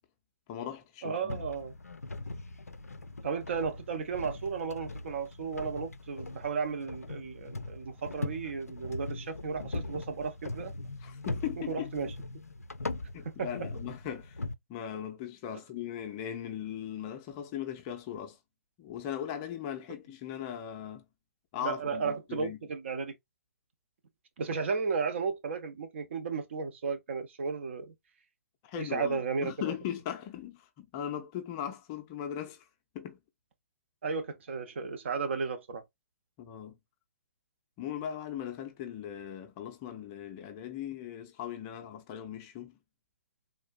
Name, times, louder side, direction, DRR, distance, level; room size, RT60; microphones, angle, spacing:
voice 1, 0.5-1.4 11.0-11.9 13.1-14.4 14.7-18.4 18.8-21.0 21.5-22.6 28.6-32.7 32.9-33.2 36.4-36.8 37.8-42.8, left 10 dB, 25° left, 0.5 m, -39 dB
voice 2, 1.0-1.7 3.2-10.7 11.7-12.1 13.2-13.7 21.6-23.1 24.4-27.9 28.8-29.7 34.0-35.8, right 5 dB, 50° right, 0.8 m, -34 dB
sound 1, 1.3-14.5, left 2 dB, 85° left, 0.4 m, -40 dB
3.6 x 2.5 x 2.3 m
figure-of-eight pair, 125°, 8 cm